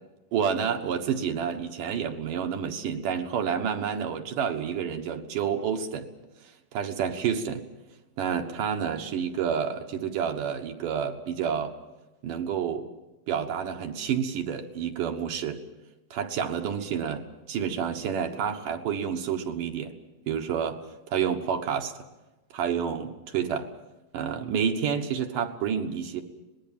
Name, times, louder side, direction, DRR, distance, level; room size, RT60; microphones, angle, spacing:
voice 1, 0.3-6.1 6.7-7.7 8.2-11.7 12.2-12.9 13.3-15.6 16.1-19.9 20.3-20.8 21.1-21.9 22.5-23.7 24.1-26.2, right 7 dB, 70° right, 5 dB, 2.9 m, -29 dB
25.0 x 20.0 x 7.4 m, 1.1 s
omnidirectional pair, 4.0 m